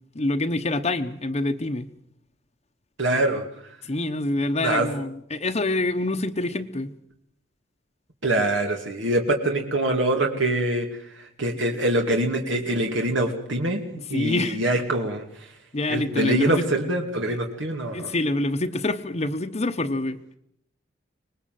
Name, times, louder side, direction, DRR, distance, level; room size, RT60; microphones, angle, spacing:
voice 1, 0.1-1.9 3.8-6.9 14.0-14.6 15.7-16.7 17.3-17.4 17.9-20.2, left 2 dB, 35° left, 5 dB, 1.0 m, -26 dB
voice 2, 3.0-3.4 4.6-4.9 8.2-10.9 11.4-15.2 15.9-18.1, right 1 dB, 80° right, 2 dB, 2.7 m, -24 dB
25.0 x 20.0 x 7.8 m, 0.71 s
head